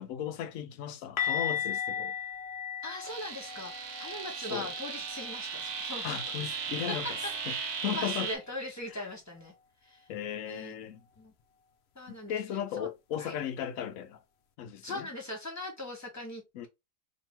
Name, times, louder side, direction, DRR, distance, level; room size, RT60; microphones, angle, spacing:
voice 1, 0.0-2.1 4.5-4.7 6.0-7.2 7.5-8.3 8.9-9.0 10.1-11.0 12.1-14.2 14.6-15.1 16.5-16.7, left 9 dB, 70° left, 0.9 m, -36 dB
sound 1, 1.2-6.9 7.2-7.5 7.8-8.0 11.2-11.3, left 8 dB, 90° left, 0.5 m, -37 dB
voice 2, 2.8-6.2 6.9-9.5 9.8-10.0 10.5-10.7 11.2-11.3 11.9-12.4 12.8-12.9 13.2-13.3 14.8-16.7, left 1 dB, 10° left, 1.1 m, -40 dB
sound 2, 3.1-8.4, right 6 dB, 75° right, 1.4 m, -37 dB
2.9 x 2.7 x 4.3 m
omnidirectional pair, 1.7 m